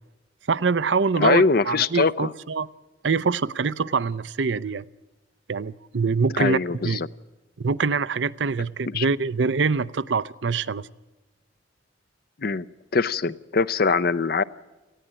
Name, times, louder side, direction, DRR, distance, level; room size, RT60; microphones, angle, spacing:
voice 1, 0.5-2.7 3.0-4.8 5.5-7.0 7.6-10.9, right 4 dB, 75° right, 18 dB, 0.6 m, -24 dB
voice 2, 1.2-2.3 6.3-7.1 8.9-9.0 12.4-12.7 12.9-14.4, left 4 dB, 55° left, 15 dB, 0.6 m, -22 dB
19.5 x 15.0 x 8.9 m, 1.1 s
head